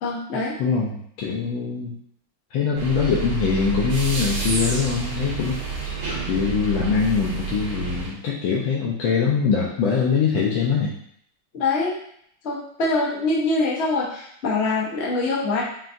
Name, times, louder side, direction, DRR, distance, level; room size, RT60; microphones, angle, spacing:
voice 1, 0.0-0.5 11.5-11.9 12.4-15.6, left 3 dB, 50° left, -5 dB, 0.8 m, -24 dB
voice 2, 0.6-2.0 2.5-5.6 6.3-10.9, left 6 dB, 75° left, -4 dB, 1.3 m, -23 dB
sound 1, 2.8-8.1, right 5 dB, 75° right, 2.1 m, -29 dB
5.7 x 2.6 x 2.5 m, 0.69 s
omnidirectional pair, 2.3 m